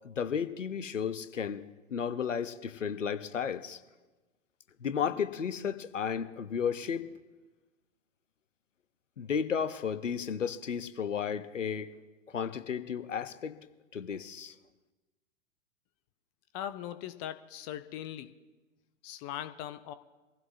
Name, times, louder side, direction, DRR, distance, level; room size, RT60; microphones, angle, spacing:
voice 1, 0.0-1.6 1.9-3.8 4.8-7.2 9.2-11.9 12.3-13.5 13.9-14.5, left 7 dB, 70° left, 12 dB, 1.0 m, -33 dB
voice 2, 16.5-18.3 19.0-19.9, left 11 dB, 20° left, 12 dB, 0.4 m, -40 dB
24.5 x 15.5 x 2.8 m, 1.2 s
figure-of-eight pair, 100°, 38 cm